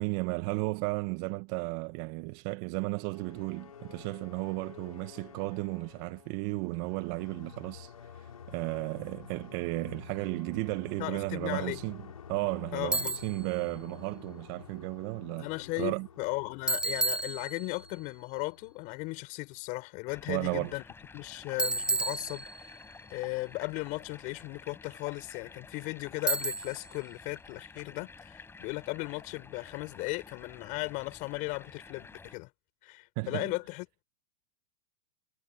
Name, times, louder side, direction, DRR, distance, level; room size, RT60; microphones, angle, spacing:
voice 1, 0.0-7.9 8.5-12.0 12.3-15.5 15.8-16.1 20.3-20.7 33.2-33.5, right 27 dB, 50° right, 1.6 m, -34 dB
sound 1, 2.8-19.7, left 7 dB, 90° left, 3.9 m, -50 dB
voice 2, 11.0-11.8 12.7-13.2 15.4-20.8 21.1-22.8 23.1-32.5 32.8-34.0, left 25 dB, 50° left, 6.8 m, -36 dB
Bicycle, 12.9-13.4 16.7-17.9 21.6-22.8 26.3-26.9, right 3 dB, 5° right, 2.2 m, -31 dB
sound 2, 20.1-32.4, left 4 dB, 15° left, 5.5 m, -51 dB
hypercardioid pair, 110°, 17 cm